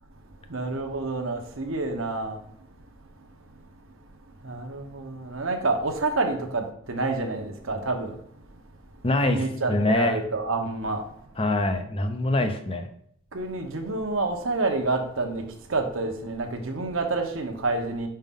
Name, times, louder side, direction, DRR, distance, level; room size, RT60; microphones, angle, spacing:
voice 1, 0.5-2.4 4.4-8.2 9.2-11.0 12.4-12.5 13.3-18.1, right 3 dB, 75° right, 4 dB, 0.9 m, -28 dB
voice 2, 9.0-10.2 11.4-12.9, left 2 dB, 25° left, 7 dB, 0.6 m, -24 dB
5.6 x 5.1 x 3.6 m, 0.67 s
head